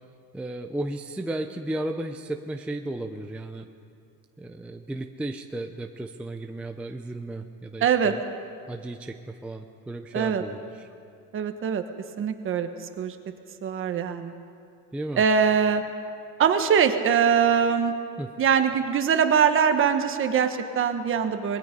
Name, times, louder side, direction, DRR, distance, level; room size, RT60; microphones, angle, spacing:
voice 1, 0.3-3.7 4.4-8.2 8.7-10.9 14.9-15.2 18.2-18.3, right 1 dB, 5° right, 4 dB, 0.5 m, -34 dB
voice 2, 7.8-8.1 10.1-10.4 11.3-11.8 12.2-12.7 13.0-13.1 13.6-14.3 15.2-15.8 16.4-17.9 18.4-21.6, right 7 dB, 30° right, 7 dB, 1.4 m, -22 dB
25.5 x 21.0 x 5.3 m, 2.4 s
cardioid pair, 155°, 40 cm